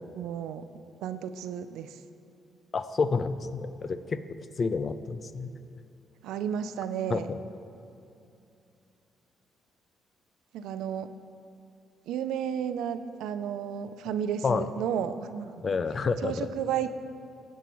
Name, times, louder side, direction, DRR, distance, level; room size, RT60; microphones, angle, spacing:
voice 1, 0.1-0.7 1.0-2.0 6.2-7.3 10.5-11.1 12.1-15.5 16.2-16.9, right 8 dB, 90° right, 11 dB, 0.4 m, -32 dB
voice 2, 2.7-4.2 4.6-5.5 7.1-7.4 14.4-14.6 15.6-16.5, left 4 dB, 40° left, 12 dB, 0.5 m, -29 dB
20.5 x 7.4 x 3.1 m, 2.6 s
cardioid pair, 90°, 0 cm